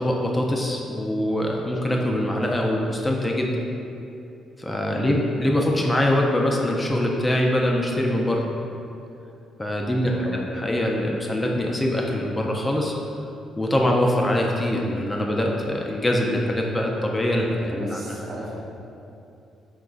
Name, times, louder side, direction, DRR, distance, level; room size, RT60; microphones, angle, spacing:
voice 1, 0.0-3.5 4.6-8.4 9.6-12.9 13.6-18.2, left 1 dB, 20° left, -1 dB, 0.3 m, -23 dB
voice 2, 9.9-10.5 17.6-18.6, right 1 dB, 55° right, -4 dB, 0.7 m, -35 dB
3.6 x 2.9 x 2.4 m, 2.7 s
cardioid pair, 90°, 0 cm